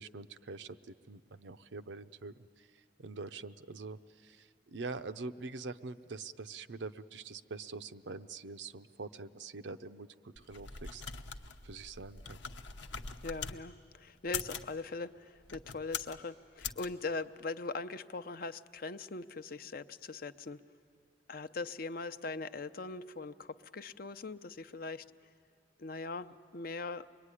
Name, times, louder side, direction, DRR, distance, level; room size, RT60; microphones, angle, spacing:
voice 1, 0.0-11.0 11.6-12.4, right 3 dB, 80° right, 10 dB, 0.7 m, -45 dB
sound 1, 10.4-13.6 14.2-14.7 15.4-16.2 16.6-16.9, left 6 dB, 90° left, 1.0 m, -42 dB
voice 2, 13.2-20.6 21.3-25.0 25.8-27.1, left 3 dB, 55° left, 10 dB, 0.7 m, -41 dB
25.5 x 22.0 x 9.9 m, 2.3 s
head